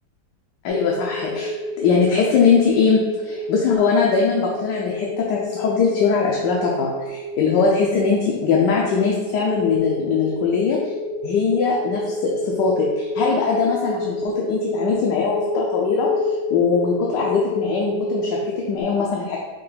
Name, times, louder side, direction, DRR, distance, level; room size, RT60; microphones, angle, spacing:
voice 1, 0.6-1.5 1.8-10.9 11.2-19.4, left 5 dB, 85° left, -2 dB, 1.2 m, -21 dB
sound 1, 0.7-18.8, left 1 dB, 40° right, 0.4 m, -29 dB
5.8 x 2.3 x 3.2 m, 1.2 s
omnidirectional pair, 1.8 m